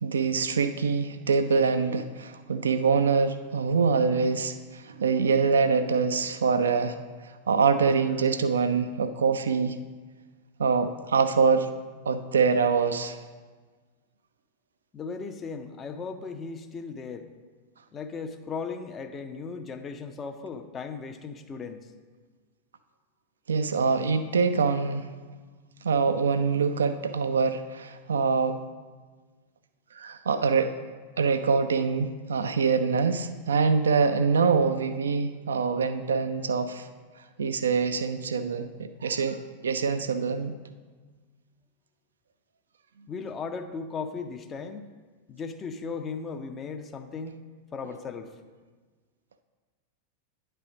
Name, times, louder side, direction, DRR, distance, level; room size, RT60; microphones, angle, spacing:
voice 1, 0.0-7.0 7.5-9.8 10.6-11.7 12.1-13.2 23.5-25.1 25.8-28.6 29.9-30.7 31.2-36.9 37.4-40.5, right 5 dB, 70° right, 10 dB, 0.3 m, -24 dB
voice 2, 14.9-17.3 17.9-21.9 43.1-44.9 45.3-47.4 47.7-48.4, left 5 dB, 25° left, 7 dB, 0.5 m, -37 dB
9.7 x 3.4 x 6.1 m, 1.4 s
figure-of-eight pair, 90°, 0 cm